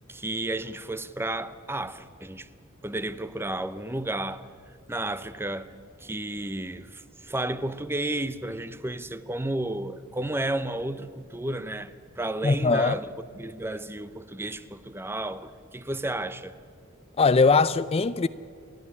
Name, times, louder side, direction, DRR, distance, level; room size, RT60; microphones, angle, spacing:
voice 1, 0.1-2.5 2.8-4.5 4.9-13.1 13.4-16.6, right 1 dB, 10° right, 0.7 m, -32 dB
voice 2, 12.4-13.0 17.2-18.3, left 4 dB, 30° left, 0.4 m, -20 dB
29.5 x 12.0 x 9.7 m
head